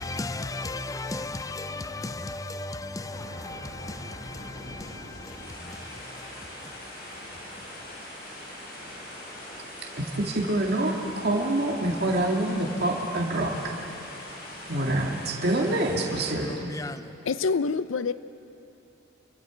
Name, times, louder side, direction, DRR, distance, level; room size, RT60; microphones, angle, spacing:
voice 1, 0.0-6.8 16.4-17.1, left 2 dB, 15° left, 0.5 m, -36 dB
sound 1, 2.6-16.3, left 1 dB, 50° left, 6.4 m, -42 dB
voice 2, 9.9-13.7 14.7-16.8, right 1 dB, 50° right, 2.2 m, -26 dB
voice 3, 17.3-18.1, left 4 dB, 75° left, 0.6 m, -26 dB
28.5 x 23.5 x 5.1 m
head